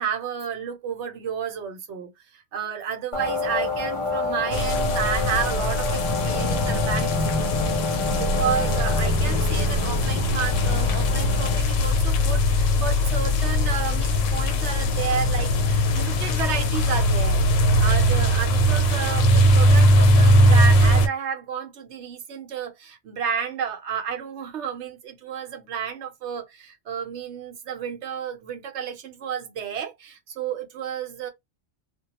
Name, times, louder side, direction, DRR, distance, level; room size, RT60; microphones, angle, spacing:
voice 1, 0.0-17.4 17.8-31.3, right 7 dB, 70° right, 0.9 m, -31 dB
sound 1, 3.1-11.6, left 3 dB, 40° left, 0.5 m, -28 dB
sound 2, 4.5-21.1, equal, 90° left, 0.9 m, -20 dB
2.2 x 2.2 x 2.8 m
omnidirectional pair, 1.3 m